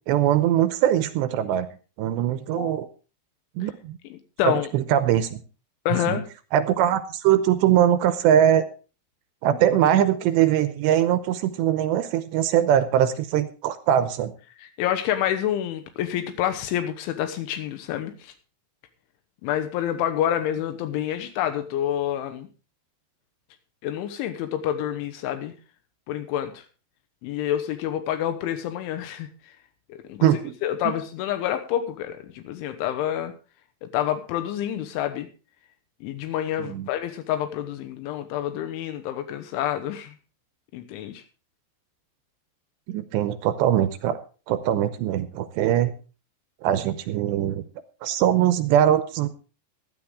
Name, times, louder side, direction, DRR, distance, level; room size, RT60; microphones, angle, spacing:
voice 1, 0.0-1.7 2.0-2.9 3.6-4.0 4.4-5.4 6.1-6.2 6.5-8.6 9.4-14.3 30.2-30.5 30.8-30.9 36.6-36.9 42.9-44.2 44.5-45.9 46.6-47.6 48.0-49.3, right 10 dB, 80° right, 12 dB, 2.7 m, -21 dB
voice 2, 4.1-4.7 5.9-6.3 14.6-18.3 19.4-22.5 23.8-25.5 26.1-26.6 27.2-29.5 29.9-33.3 33.8-35.3 36.0-40.1 40.7-41.2, left 11 dB, 85° left, 8 dB, 3.5 m, -28 dB
15.5 x 11.5 x 3.6 m, 0.35 s
omnidirectional pair, 5.4 m